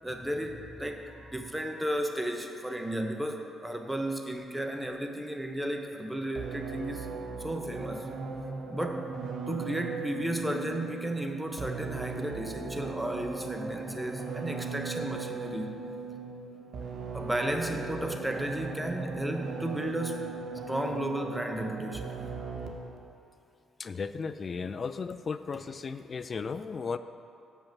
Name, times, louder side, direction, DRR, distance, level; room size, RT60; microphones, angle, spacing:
voice 1, 0.0-7.1 7.4-8.1 8.7-9.1 9.5-15.7 17.1-22.3 24.6-24.7, right 1 dB, 5° right, 4 dB, 0.7 m, -34 dB
sound 1, 6.4-23.0, right 4 dB, 60° right, 0.8 m, -38 dB
voice 2, 23.8-27.0, left 5 dB, 40° left, 12 dB, 0.3 m, -35 dB
7.1 x 5.5 x 5.9 m, 2.6 s
cardioid pair, 90°, 0 cm